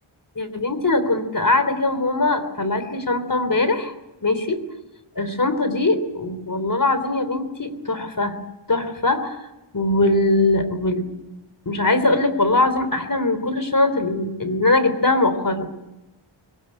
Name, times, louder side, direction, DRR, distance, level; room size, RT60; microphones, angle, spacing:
voice 1, 0.4-3.9 4.2-4.6 5.2-8.3 8.7-9.4 9.7-11.0 11.7-15.7, left 2 dB, 40° left, 10 dB, 3.5 m, -21 dB
22.5 x 20.0 x 8.8 m, 0.98 s
wide cardioid pair, 70°, 50 cm